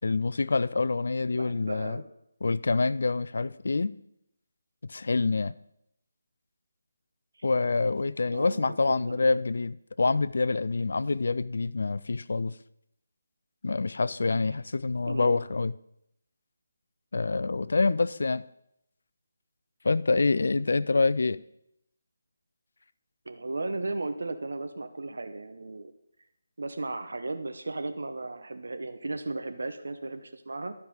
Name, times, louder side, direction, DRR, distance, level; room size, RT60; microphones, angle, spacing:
voice 1, 0.0-2.0 2.4-3.9 4.8-5.5 7.4-12.5 13.6-15.7 17.1-18.4 19.8-21.4, left 3 dB, 65° left, 17 dB, 0.4 m, -26 dB
voice 2, 1.3-2.0 7.4-7.5 8.3-9.3 15.1-15.4 23.3-25.9 26.6-30.7, right 2 dB, 70° right, 8 dB, 0.8 m, -35 dB
12.0 x 4.8 x 5.1 m, 0.79 s
figure-of-eight pair, 155°, 0 cm